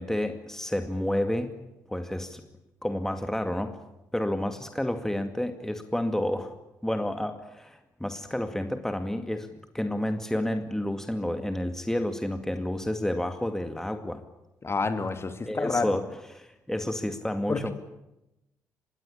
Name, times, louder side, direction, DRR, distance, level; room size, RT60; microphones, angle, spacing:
voice 1, 0.0-1.5 1.9-2.4 2.8-3.8 4.1-6.5 6.8-9.5 9.7-14.2 15.5-17.7, left 1 dB, 5° left, 7 dB, 2.2 m, -30 dB
voice 2, 14.6-16.0 17.5-17.7, left 3 dB, 30° left, 8 dB, 2.9 m, -29 dB
26.0 x 22.0 x 8.6 m, 0.92 s
figure-of-eight pair, 40°, 9 cm